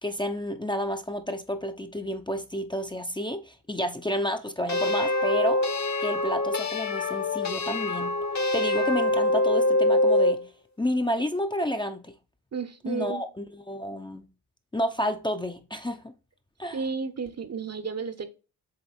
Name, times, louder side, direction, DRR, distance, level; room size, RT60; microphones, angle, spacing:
voice 1, 0.0-5.6 6.0-8.2 8.5-10.4 10.8-12.1 12.9-14.2 14.7-16.1 16.6-16.8, equal, 10° left, 0.8 m, -30 dB
sound 1, 4.7-10.4, left 2 dB, 45° left, 1.4 m, -24 dB
voice 2, 12.5-13.2 16.7-18.2, right 5 dB, 40° right, 1.2 m, -32 dB
8.0 x 3.1 x 4.3 m
supercardioid pair, 60°, 40 cm